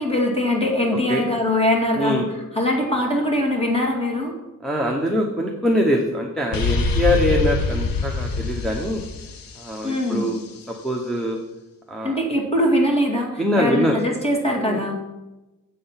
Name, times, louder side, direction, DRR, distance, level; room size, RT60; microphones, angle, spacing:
voice 1, 0.0-4.3 9.8-10.3 12.0-14.9, left 1 dB, 20° left, -1 dB, 2.2 m, -22 dB
voice 2, 1.9-2.3 4.6-9.0 9.6-10.4 10.7-11.4 11.9-12.2 13.4-14.0 14.6-14.8, equal, ahead, -1 dB, 0.8 m, -23 dB
sound 1, 6.5-10.3, left 3 dB, 80° left, 0.9 m, -24 dB
7.8 x 7.6 x 5.7 m, 1.0 s
wide cardioid pair, 150°, 33 cm